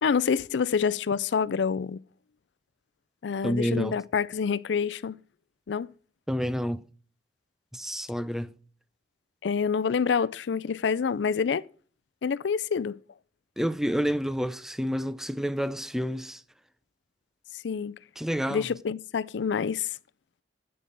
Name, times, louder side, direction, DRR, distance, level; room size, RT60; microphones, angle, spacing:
voice 1, 0.0-2.0 3.2-5.2 5.7-5.9 9.4-11.6 12.2-13.0 17.6-18.0 18.5-20.0, left 6 dB, 85° left, 0.4 m, -27 dB
voice 2, 3.4-4.0 6.3-6.8 7.7-8.5 13.6-16.4 18.2-18.7, equal, 5° right, 0.5 m, -29 dB
10.0 x 8.9 x 3.9 m
head